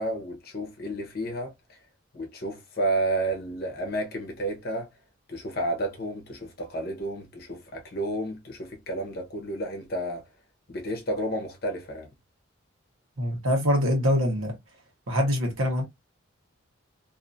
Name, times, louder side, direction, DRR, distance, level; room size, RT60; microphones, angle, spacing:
voice 1, 0.0-1.8 2.1-4.9 5.3-10.2 10.7-12.1, right 1 dB, 45° left, 0.8 m, -31 dB
voice 2, 13.2-14.6 15.1-15.8, equal, 80° right, 1.1 m, -24 dB
2.6 x 2.5 x 2.5 m
head